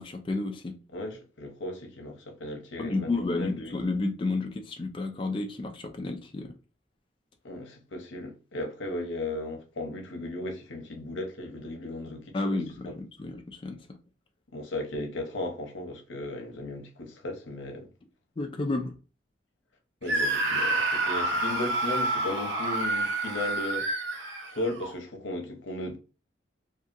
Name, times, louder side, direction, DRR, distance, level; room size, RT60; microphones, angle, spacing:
voice 1, 0.0-0.8 2.8-6.5 12.3-14.0 18.4-18.9, left 2 dB, 30° left, 0.3 m, -31 dB
voice 2, 0.9-3.7 7.4-12.3 12.9-13.0 14.5-17.9 20.0-23.9 24.4-26.0, left 1 dB, 85° left, 0.8 m, -36 dB
Screaming, 20.1-24.9, right 2 dB, 70° right, 0.7 m, -28 dB
2.7 x 2.2 x 2.5 m
head